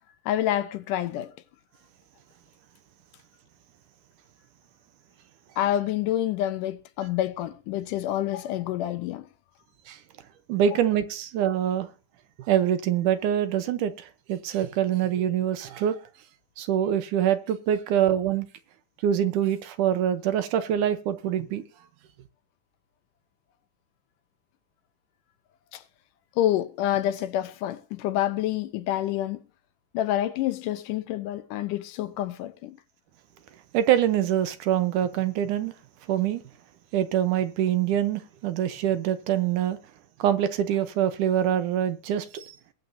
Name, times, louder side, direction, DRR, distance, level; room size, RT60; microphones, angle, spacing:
voice 1, 0.3-1.3 5.6-9.3 25.7-25.8 26.4-29.4 29.9-32.8, left 12 dB, 80° left, 2.2 m, -28 dB
voice 2, 10.5-11.9 12.5-16.0 16.6-18.5 19.0-21.6 33.7-35.7 36.1-36.4 36.9-39.8 40.2-42.5, right 10 dB, 75° right, 2.2 m, -25 dB
21.0 x 8.5 x 2.7 m
omnidirectional pair, 4.0 m